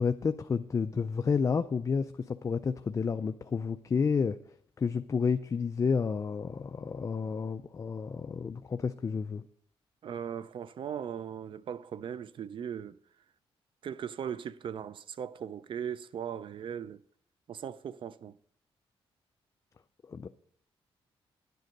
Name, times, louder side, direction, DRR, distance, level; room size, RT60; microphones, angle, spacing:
voice 1, 0.0-4.4 4.8-9.4 20.1-20.3, left 5 dB, 30° left, 0.4 m, -30 dB
voice 2, 10.0-13.0 13.8-17.0 17.5-18.4, right 8 dB, 55° right, 0.5 m, -38 dB
11.0 x 9.3 x 5.3 m
cardioid pair, 120°, 10 cm